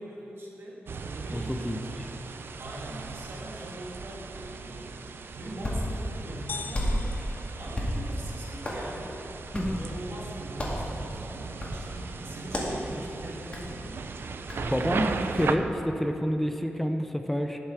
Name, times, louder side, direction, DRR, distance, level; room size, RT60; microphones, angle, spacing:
voice 1, 0.0-2.1 2.6-9.2 9.7-13.9, right 1 dB, 90° right, -3 dB, 2.3 m, -42 dB
sound 1, 0.9-15.6, right 5 dB, 70° right, 0.5 m, -38 dB
voice 2, 1.3-1.8 9.5-9.8 14.6-17.6, equal, 5° left, 5 dB, 0.6 m, -28 dB
Hands, 5.2-15.6, equal, 30° left, 2.1 m, -35 dB
sound 2, 6.5-8.4, left 5 dB, 55° left, 0.4 m, -42 dB
18.5 x 6.7 x 4.7 m, 3.0 s
wide cardioid pair, 150°, 4 cm